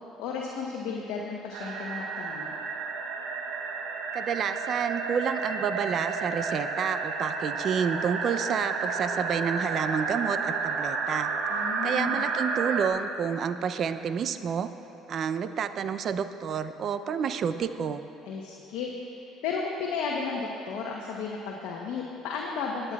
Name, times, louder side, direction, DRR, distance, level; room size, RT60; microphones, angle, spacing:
voice 1, 0.2-2.5 11.5-12.2 18.2-22.9, left 5 dB, 75° left, -1 dB, 0.9 m, -34 dB
sound 1, 1.5-12.9, right 4 dB, 75° right, 0.9 m, -31 dB
voice 2, 4.1-11.3 11.8-14.7 15.1-18.0, right 7 dB, 55° right, 11 dB, 0.5 m, -29 dB
22.5 x 8.8 x 2.4 m, 2.8 s
supercardioid pair, 70°, 0 cm